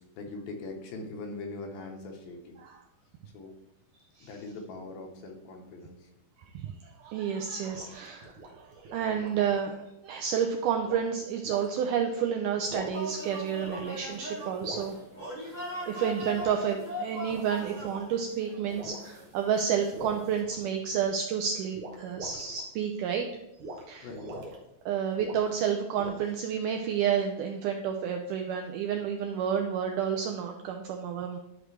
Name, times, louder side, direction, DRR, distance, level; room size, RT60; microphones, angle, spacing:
voice 1, 0.2-2.6 3.3-3.5 4.2-6.1 24.0-24.3, left 3 dB, 80° left, 2 dB, 2.8 m, -41 dB
voice 2, 6.5-15.0 15.4-15.5 15.9-23.3 23.9-24.1 24.9-31.4, right 8 dB, 85° right, 4 dB, 1.8 m, -30 dB
sound 1, 7.3-9.6 10.8-11.1 11.5-11.7 12.5-13.2 13.6-14.2 14.6-14.9 16.3-16.6 17.2-18.0 18.7-19.1 19.9-21.1 21.7-22.6 23.6-23.8 24.1-24.6 25.2-25.6 26.0-26.4, right 1 dB, 65° right, 1.4 m, -42 dB
sound 2, 12.9-20.4, equal, 10° left, 1.1 m, -40 dB
11.0 x 5.0 x 3.2 m, 0.86 s
omnidirectional pair, 4.3 m